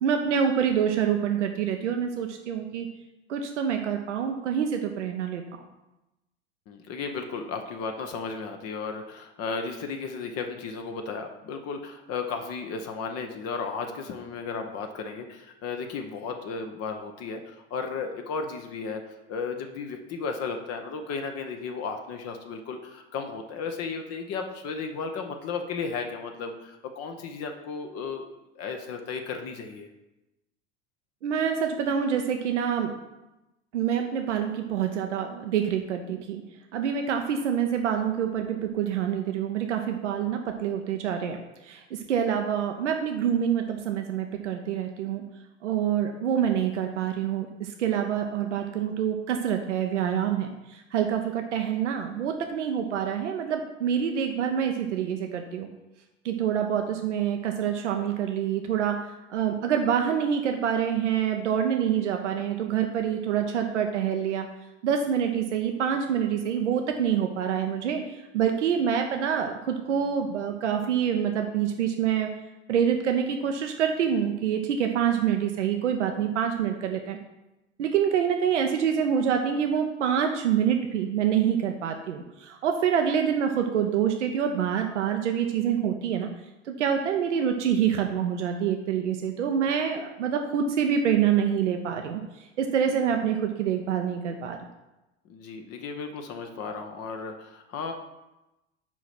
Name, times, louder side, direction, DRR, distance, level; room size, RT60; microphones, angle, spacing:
voice 1, 0.0-2.9 3.3-5.4 31.2-32.9 33.7-36.4 36.7-41.4 41.6-45.2 45.6-55.7 56.2-59.0 59.3-64.5 64.8-72.3 72.7-77.2 77.8-86.3 86.8-92.2 92.6-94.6, right 8 dB, 75° right, 4 dB, 0.7 m, -26 dB
voice 2, 6.7-19.0 19.3-29.9 95.3-97.9, left 5 dB, 45° left, 5 dB, 1.0 m, -34 dB
6.1 x 5.0 x 5.9 m, 0.99 s
figure-of-eight pair, 75°, 36 cm